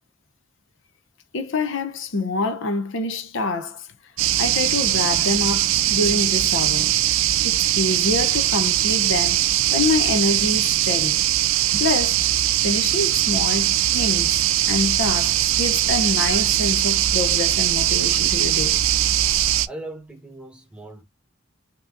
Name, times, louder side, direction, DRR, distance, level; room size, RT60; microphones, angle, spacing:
voice 1, 1.3-3.9 4.4-6.9 7.4-11.2 11.7-12.3 12.6-18.8, left 3 dB, 70° left, 0.7 m, -26 dB
sound 1, 4.2-19.7, right 13 dB, 85° right, 0.4 m, -20 dB
voice 2, 19.7-21.0, right 1 dB, 5° right, 1.0 m, -39 dB
5.9 x 2.8 x 2.5 m
head